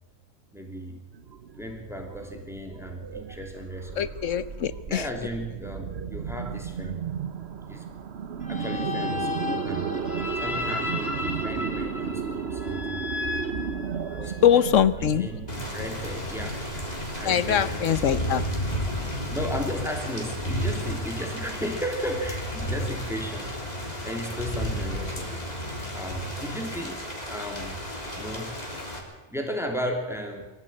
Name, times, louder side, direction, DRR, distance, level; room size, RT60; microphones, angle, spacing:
voice 1, 0.5-1.0 1.6-4.2 4.9-7.0 7.7-7.8 8.5-13.1 14.1-14.7 15.0-15.5 15.7-16.6 17.1-18.3 19.3-23.5 24.0-25.5 25.9-27.0 27.3-27.8 28.2-28.5 29.3-30.5, equal, ahead, 3 dB, 2.8 m, -35 dB
sound 1, 1.1-18.9, right 6 dB, 55° right, 1.2 m, -34 dB
voice 2, 4.0-5.0 14.4-15.3 17.3-18.4, left 9 dB, 75° left, 15 dB, 1.3 m, -22 dB
sound 2, 8.4-14.4, left 3 dB, 50° left, 2.3 m, -34 dB
Thunder / Rain, 15.5-29.0, equal, 30° left, 3.7 m, -32 dB
23.5 x 14.0 x 8.8 m, 1.1 s
omnidirectional pair, 1.3 m